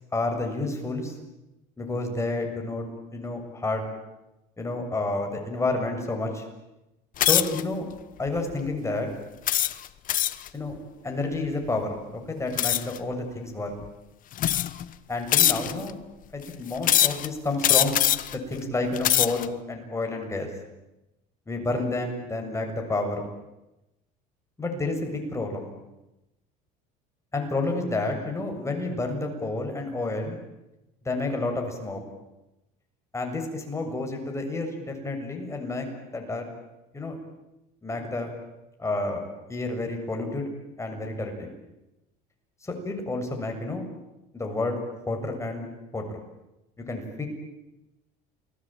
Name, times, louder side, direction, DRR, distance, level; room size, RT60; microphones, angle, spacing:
voice 1, 0.1-1.1 1.8-2.9 3.1-3.8 4.6-6.4 7.2-7.8 8.2-9.1 10.5-10.7 11.0-13.7 15.1-15.9 16.3-18.0 18.3-20.5 21.5-23.2 24.6-25.7 27.3-30.4 31.0-32.0 33.1-35.9 36.1-36.5 36.9-37.2 37.8-38.3 38.8-39.2 39.5-40.5 40.8-41.5 42.6-43.8 44.3-44.8 45.1-45.7 45.9-46.0 46.9-47.3, left 2 dB, 15° left, 3 dB, 7.2 m, -30 dB
sound 1, 7.2-7.6 8.3-8.5 9.5-10.5 12.6-13.0 13.8-13.9 14.4-14.8 15.3-15.9 16.8-17.3 17.6-18.3 18.8-19.5, left 12 dB, 50° left, 1.2 m, -22 dB
29.0 x 21.0 x 9.1 m, 0.97 s
supercardioid pair, 110°, 18 cm